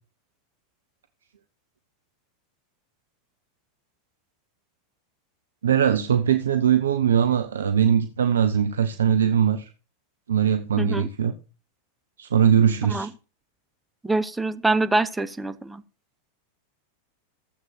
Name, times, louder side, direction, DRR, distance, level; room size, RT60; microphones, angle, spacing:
voice 1, 5.6-9.7 10.3-11.3 12.2-13.1, right 8 dB, 65° right, 0.9 m, -21 dB
voice 2, 10.8-11.1 12.9-13.1 14.0-15.8, right 2 dB, 5° right, 1.0 m, -25 dB
15.0 x 7.9 x 4.6 m
figure-of-eight pair, 90°, 0 cm